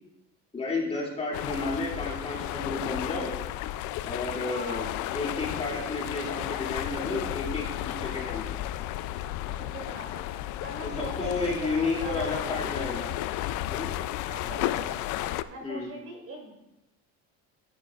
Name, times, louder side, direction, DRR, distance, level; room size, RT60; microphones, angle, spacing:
voice 1, 0.5-3.3 4.0-8.4 10.8-13.1 13.7-13.9 15.6-15.9, left 3 dB, 20° left, -5 dB, 2.5 m, -32 dB
sound 1, 1.3-15.4, left 14 dB, 75° left, 0.5 m, -33 dB
voice 2, 4.4-4.9 9.6-12.6 14.3-15.0 15.5-16.5, right 1 dB, 45° right, 0 dB, 2.8 m, -41 dB
10.0 x 10.0 x 2.4 m, 0.91 s
cardioid pair, 125°, 30 cm